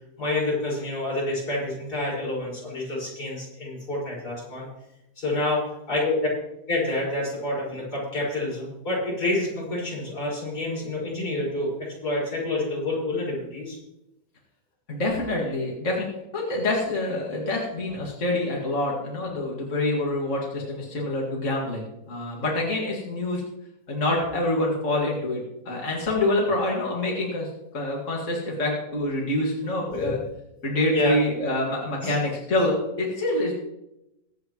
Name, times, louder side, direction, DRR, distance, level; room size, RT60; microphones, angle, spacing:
voice 1, 0.2-4.7 5.2-5.6 5.9-6.2 6.7-13.8 29.9-30.3 30.9-31.1 32.0-32.1, left 2 dB, 85° left, -5 dB, 6.1 m, -28 dB
voice 2, 14.9-16.0 16.3-23.4 23.9-27.5 27.7-30.2 30.6-33.6, left 1 dB, 50° left, -2 dB, 2.5 m, -26 dB
22.5 x 8.5 x 3.1 m, 0.88 s
omnidirectional pair, 1.7 m